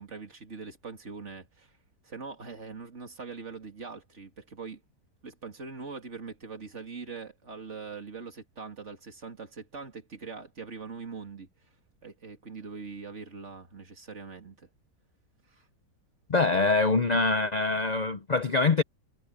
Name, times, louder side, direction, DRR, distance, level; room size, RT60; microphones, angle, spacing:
voice 1, 0.0-1.8 2.0-4.8 5.2-11.5 12.0-14.7 15.5-15.7, right 5 dB, 45° right, 3.0 m, -42 dB
voice 2, 16.3-18.8, left 3 dB, 75° left, 0.4 m, -24 dB
omnidirectional pair, 1.8 m